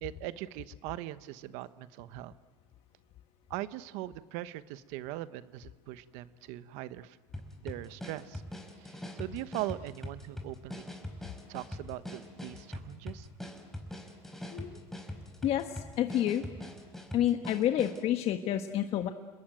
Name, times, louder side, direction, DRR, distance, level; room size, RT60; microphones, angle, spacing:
voice 1, 0.0-2.3 3.5-7.2 7.6-8.4 8.8-10.8 11.5-13.3, right 15 dB, 75° right, 13 dB, 1.1 m, -40 dB
sound 1, 7.3-18.1, left 1 dB, 5° left, 4.9 m, -43 dB
voice 2, 15.4-16.4 17.1-19.1, left 11 dB, 60° left, 6 dB, 1.5 m, -29 dB
29.5 x 21.0 x 9.2 m, 1.4 s
supercardioid pair, 95°, 12 cm